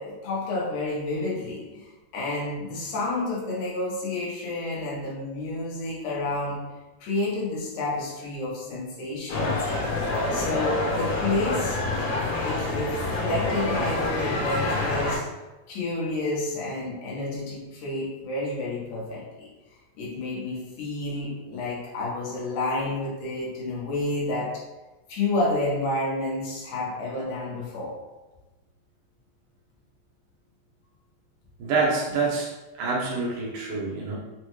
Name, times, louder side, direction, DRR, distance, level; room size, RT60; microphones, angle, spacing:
voice 1, 0.0-6.6 7.0-9.9 10.3-11.8 12.4-15.3 15.7-19.5 20.0-24.5 25.1-28.0, left 2 dB, 90° left, -5 dB, 2.6 m, -30 dB
sound 1, 9.3-15.2, left 2 dB, 75° left, 1.8 m, -27 dB
voice 2, 31.6-32.5 32.8-34.2, right 4 dB, 85° right, -2 dB, 2.3 m, -26 dB
6.0 x 2.2 x 3.1 m, 1.1 s
omnidirectional pair, 3.4 m